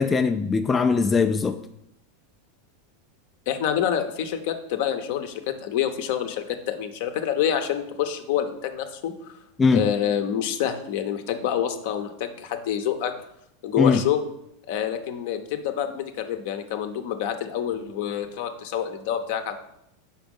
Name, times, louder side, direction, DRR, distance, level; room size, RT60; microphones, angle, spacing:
voice 1, 0.0-1.6 9.6-9.9 13.8-14.0, left 5 dB, 20° left, 7 dB, 0.3 m, -20 dB
voice 2, 3.5-9.1 9.7-13.1 13.6-14.2 14.7-19.6, left 9 dB, 60° left, 7 dB, 0.7 m, -27 dB
5.1 x 4.4 x 5.3 m, 0.79 s
hypercardioid pair, 90°, 0 cm